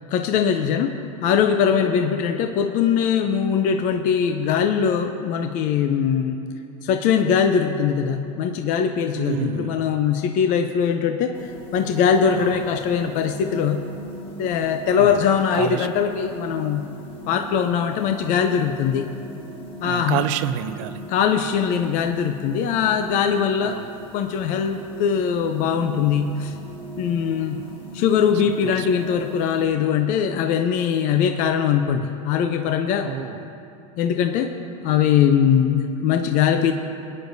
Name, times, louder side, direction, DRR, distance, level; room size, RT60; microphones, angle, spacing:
voice 1, 0.1-0.9 1.2-6.4 6.8-11.4 11.7-13.8 14.4-16.8 17.3-19.1 19.8-20.2 21.1-23.8 24.1-26.5 27.0-27.6 27.9-33.1 34.0-34.5 34.8-36.7, left 7 dB, 45° left, 6 dB, 0.6 m, -21 dB
voice 2, 9.1-9.8 12.3-12.6 15.0-15.2 15.5-15.9 19.8-21.1 23.6-23.9 28.4-28.9 33.0-33.4, right 11 dB, 65° right, 12 dB, 0.6 m, -29 dB
sound 1, 11.3-29.7, right 1 dB, 30° left, 1.5 m, -39 dB
21.0 x 9.6 x 2.7 m, 2.7 s
supercardioid pair, 130°, 18 cm